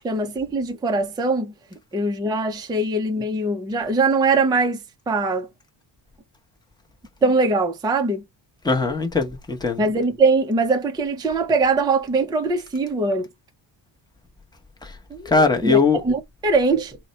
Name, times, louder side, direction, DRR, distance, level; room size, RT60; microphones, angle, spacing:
voice 1, 0.0-1.5 1.9-4.8 5.1-5.5 7.2-8.2 9.8-13.3 15.1-15.2 15.6-15.8 16.0-17.0, right 3 dB, 10° right, 0.4 m, -21 dB
voice 2, 8.6-9.8 14.8-15.0 15.2-16.0, left 4 dB, 10° left, 0.8 m, -20 dB
4.0 x 2.1 x 3.9 m
cardioid pair, 145°, 46 cm